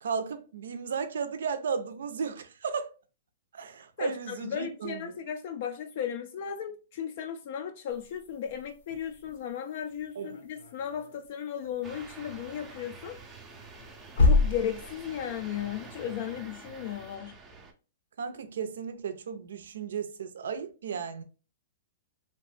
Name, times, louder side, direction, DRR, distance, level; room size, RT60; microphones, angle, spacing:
voice 1, 0.0-2.9 3.5-5.1 10.2-10.4 18.2-21.2, right 6 dB, 80° right, 0.4 m, -34 dB
voice 2, 4.0-13.2 14.2-17.3, left 9 dB, 50° left, 0.3 m, -35 dB
sound 1, 7.9-17.2, left 3 dB, 75° left, 0.7 m, -32 dB
sound 2, 11.8-17.7, right 4 dB, 15° right, 0.4 m, -47 dB
2.9 x 2.1 x 3.1 m
hypercardioid pair, 150°, 0 cm